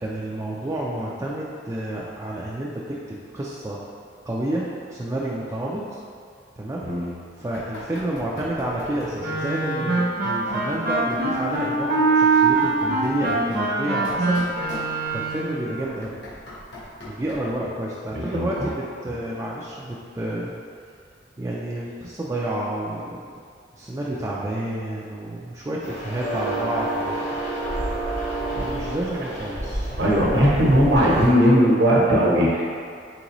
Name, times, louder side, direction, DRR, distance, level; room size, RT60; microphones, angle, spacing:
voice 1, 0.0-3.8 4.3-5.8 6.6-6.9 7.4-14.4 14.7-14.8 15.1-16.2 17.1-20.5 21.4-23.2 23.7-27.5 28.5-29.9 30.4-30.8, right 1 dB, 15° right, -5 dB, 0.3 m, -30 dB
Knock, 7.5-9.3 10.5-11.7 12.4-15.3 15.8-17.6, left 1 dB, 70° left, 1.2 m, -40 dB
Wind instrument woodwind instrument, 9.2-15.6, right 3 dB, 55° right, 0.8 m, -23 dB
voice 2, 18.1-18.7 30.0-32.6, equal, 75° right, -5 dB, 1.0 m, -18 dB
sound 1, 25.8-31.3, right 1 dB, 40° left, 1.0 m, -29 dB
3.9 x 3.7 x 3.0 m, 2.3 s
head